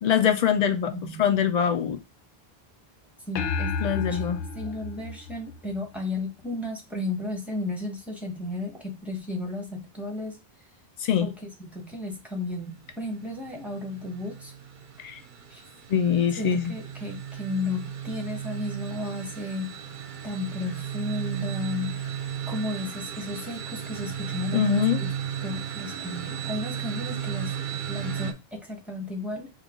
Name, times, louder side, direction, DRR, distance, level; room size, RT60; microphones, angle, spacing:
voice 1, 0.0-0.9 1.2-2.0 3.8-4.4 11.0-11.3 15.0-15.2 15.9-16.7 24.5-25.0, left 8 dB, 50° left, 0.6 m, -23 dB
voice 2, 0.9-1.2 3.3-10.4 11.2-14.5 15.5-15.6 16.4-19.7 20.2-22.0 22.5-25.1 25.4-27.5 27.9-29.5, left 2 dB, ahead, 1.0 m, -34 dB
sound 1, 3.4-6.0, left 4 dB, 75° left, 0.8 m, -32 dB
sound 2, 12.8-28.3, right 9 dB, 55° right, 0.7 m, -35 dB
5.6 x 2.4 x 3.5 m
omnidirectional pair, 1.0 m